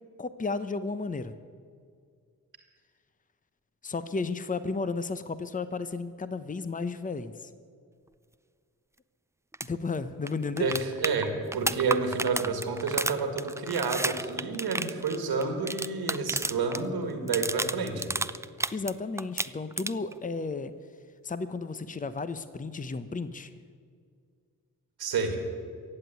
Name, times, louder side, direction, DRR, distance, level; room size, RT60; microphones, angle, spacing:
voice 1, 0.2-1.3 3.8-7.5 9.7-10.7 18.7-20.7 21.2-23.5, left 4 dB, 20° left, 13 dB, 0.8 m, -33 dB
sound 1, 9.5-9.7 9.9-10.0 10.3-16.8 17.1-18.9 19.2-20.1 22.2-22.3, right 2 dB, 10° right, 0.4 m, -31 dB
voice 2, 10.6-18.1 25.0-25.4, right 4 dB, 90° right, 5 dB, 1.9 m, -29 dB
15.0 x 7.8 x 9.3 m, 2.1 s
cardioid pair, 50°, 36 cm